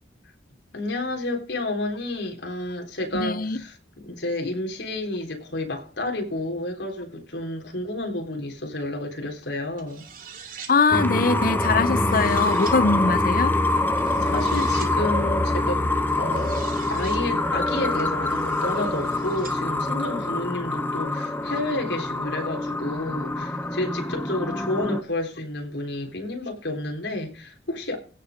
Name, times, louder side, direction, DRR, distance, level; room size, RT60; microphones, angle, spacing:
voice 1, 0.7-10.1 14.2-15.9 16.2-28.0, left 2 dB, 80° left, 3.6 m, -30 dB
voice 2, 3.1-3.6 10.7-13.6, left 4 dB, 50° left, 0.6 m, -22 dB
sound 1, 9.8-10.7 11.7-12.8 14.0-14.9 16.1-17.2 18.0-19.6, right 7 dB, 50° right, 2.5 m, -43 dB
sound 2, 10.9-25.0, left 2 dB, 10° left, 0.9 m, -25 dB
16.5 x 5.7 x 5.1 m
head